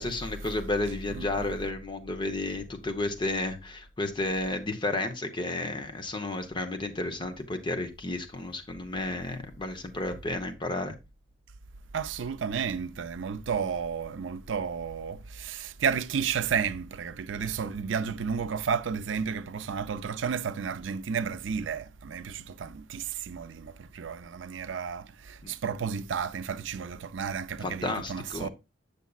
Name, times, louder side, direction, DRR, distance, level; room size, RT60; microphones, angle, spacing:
voice 1, 0.0-10.9 25.4-25.5 27.6-28.5, left 2 dB, 25° left, 0.8 m, -32 dB
voice 2, 1.1-1.5 11.9-28.5, right 6 dB, 85° right, 0.5 m, -32 dB
8.1 x 6.7 x 2.3 m
head